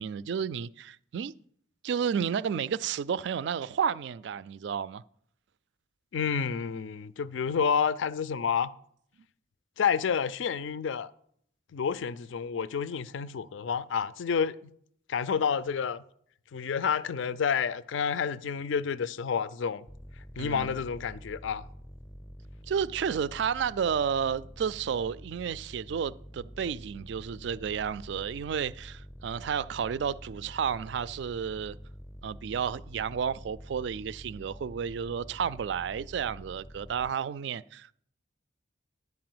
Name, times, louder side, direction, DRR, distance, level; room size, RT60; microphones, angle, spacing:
voice 1, 0.0-1.3 1.8-5.0 20.4-20.8 22.7-31.8 32.2-37.9, right 7 dB, 60° right, 0.3 m, -31 dB
voice 2, 6.1-8.7 9.8-11.1 11.7-14.7 15.1-16.0 16.5-19.9 20.4-21.6, left 6 dB, 75° left, 0.4 m, -29 dB
sound 1, 19.9-37.2, equal, 5° left, 0.5 m, -47 dB
11.0 x 4.7 x 7.7 m
head